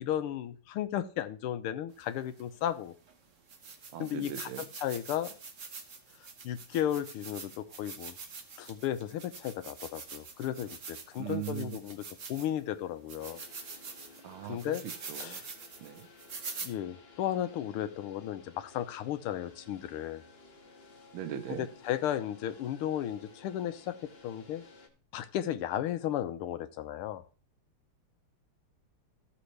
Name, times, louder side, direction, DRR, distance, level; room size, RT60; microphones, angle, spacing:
voice 1, 0.0-2.9 4.0-5.4 6.4-8.2 8.6-13.4 14.5-14.9 15.2-15.5 16.6-20.2 21.5-24.6 25.1-27.2, left 11 dB, 90° left, 12 dB, 1.6 m, -34 dB
sound 1, 2.4-2.5 3.1-3.2 3.5-12.6 13.1-16.7, right 5 dB, 45° right, 1.2 m, -45 dB
voice 2, 3.9-4.6 11.2-11.8 14.2-15.4 15.8-16.1 21.1-21.7, right 11 dB, 75° right, 10 dB, 1.7 m, -39 dB
sound 2, 13.2-24.9, left 3 dB, 35° left, 1.0 m, -56 dB
14.0 x 6.2 x 3.2 m, 0.39 s
omnidirectional pair, 2.4 m